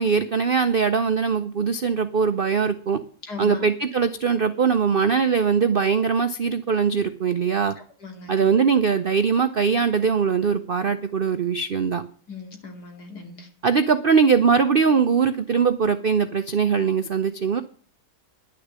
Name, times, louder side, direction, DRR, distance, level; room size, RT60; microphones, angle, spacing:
voice 1, 0.0-3.0 3.4-7.7 8.3-12.0 13.6-17.6, right 6 dB, 55° right, 9 dB, 0.6 m, -21 dB
voice 2, 3.3-3.6 8.0-8.5 12.3-13.5, left 5 dB, 65° left, 3 dB, 3.2 m, -38 dB
11.0 x 6.8 x 9.5 m, 0.44 s
omnidirectional pair, 1.9 m